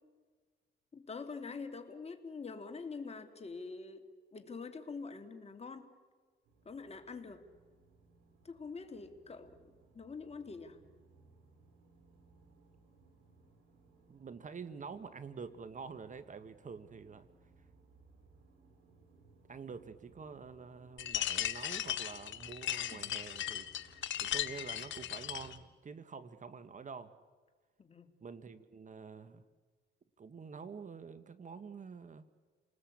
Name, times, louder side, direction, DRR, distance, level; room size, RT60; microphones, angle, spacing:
voice 1, 0.9-4.0 4.3-5.9 6.6-7.4 8.4-9.6 9.9-10.8 22.9-23.1 27.8-28.1, left 4 dB, 30° left, 7 dB, 2.8 m, -45 dB
sound 1, 6.4-25.6, right 3 dB, 90° right, 6.1 m, -64 dB
voice 2, 14.1-17.3 19.5-23.7 24.2-27.1 28.2-29.4 30.2-32.3, right 5 dB, 40° right, 12 dB, 1.4 m, -47 dB
sound 2, 21.0-25.6, left 11 dB, 70° left, 1.3 m, -37 dB
29.0 x 19.5 x 8.7 m, 1.5 s
cardioid pair, 90°, 20 cm